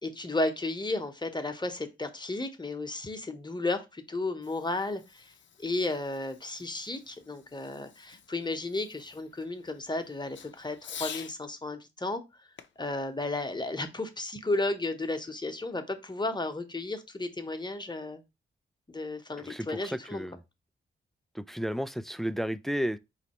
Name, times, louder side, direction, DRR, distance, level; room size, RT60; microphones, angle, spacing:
voice 1, 0.0-12.5 12.8-18.2 18.9-20.3, left 2 dB, 20° left, 0.9 m, -33 dB
Fireworks, 4.2-11.4 12.6-14.2, left 8 dB, 60° left, 0.5 m, -48 dB
voice 2, 19.4-19.8 20.1-20.4 21.4-23.0, equal, ahead, 0.3 m, -32 dB
4.0 x 3.2 x 3.0 m
supercardioid pair, 45°, 21 cm